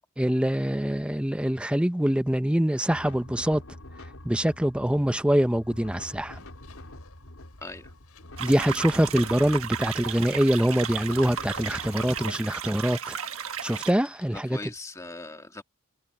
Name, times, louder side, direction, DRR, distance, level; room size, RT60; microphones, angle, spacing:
voice 1, 0.2-3.6 4.2-6.4 8.4-13.2 13.6-14.6, equal, 5° right, 0.6 m, -24 dB
sound 1, 2.9-12.2, left 1 dB, 70° left, 3.8 m, -45 dB
Bicycle, 5.1-14.6, left 10 dB, 85° left, 6.7 m, -57 dB
voice 2, 7.6-7.9 8.4-8.5 14.3-15.6, left 2 dB, 15° left, 1.8 m, -40 dB
sound 2, 8.4-13.9, right 8 dB, 65° right, 1.4 m, -34 dB
head